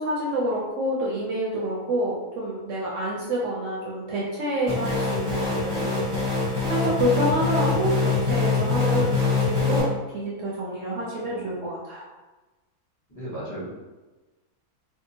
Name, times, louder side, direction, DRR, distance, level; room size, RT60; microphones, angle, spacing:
voice 1, 0.0-6.0 6.7-12.1, right 1 dB, 70° right, -5 dB, 0.8 m, -27 dB
sound 1, 4.7-9.8, left 4 dB, 15° right, 0.9 m, -24 dB
voice 2, 13.1-13.7, right 1 dB, 15° left, -10 dB, 0.8 m, -36 dB
2.7 x 2.3 x 2.7 m, 1.2 s
omnidirectional pair, 1.6 m